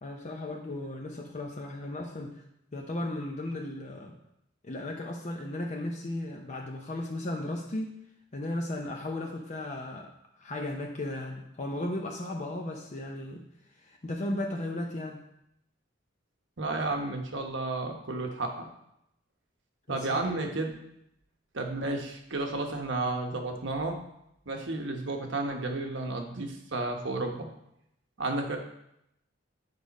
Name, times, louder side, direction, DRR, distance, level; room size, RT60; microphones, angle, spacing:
voice 1, 0.0-2.4 2.7-4.2 4.6-8.0 8.3-10.1 10.4-13.4 13.8-15.2 19.9-20.4, left 1 dB, 40° left, 0 dB, 0.7 m, -35 dB
voice 2, 16.6-18.6 19.9-20.8 21.5-24.0 24.5-27.5 28.2-28.6, right 2 dB, 65° right, 3 dB, 1.1 m, -32 dB
8.3 x 5.1 x 4.1 m, 0.79 s
head